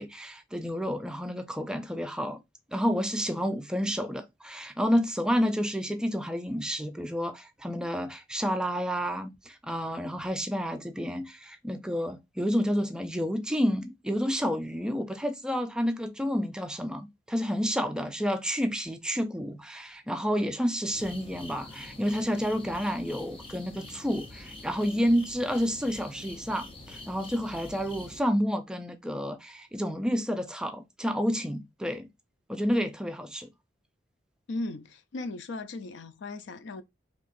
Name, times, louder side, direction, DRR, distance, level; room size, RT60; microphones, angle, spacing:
voice 1, 0.0-2.4 2.7-32.1 32.5-33.5, equal, 5° right, 0.3 m, -30 dB
sound 1, 20.9-28.2, left 1 dB, 30° left, 0.6 m, -45 dB
voice 2, 34.5-36.8, left 2 dB, 75° left, 0.4 m, -37 dB
4.0 x 2.9 x 2.5 m
head